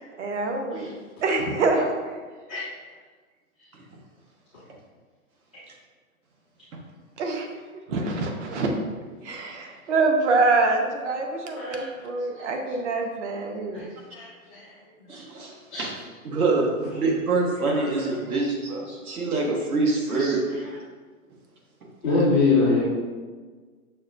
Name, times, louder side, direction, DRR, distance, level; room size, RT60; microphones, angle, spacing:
voice 1, 0.2-0.9 1.2-1.8 7.2-7.5 7.9-8.7 9.2-13.9, right 3 dB, 55° right, 3 dB, 0.7 m, -25 dB
voice 2, 1.7-2.1 2.5-2.6 11.5-11.9 12.3-12.7 13.7-13.8 14.1-14.7 15.7-15.8 17.0-17.1 17.7-18.5 20.1-20.7 22.0-22.8, left 3 dB, 5° left, -13 dB, 0.4 m, -26 dB
voice 3, 15.1-20.8, right 3 dB, 80° right, 0 dB, 1.1 m, -26 dB
6.2 x 2.2 x 2.4 m, 1.4 s
hypercardioid pair, 150°, 43 cm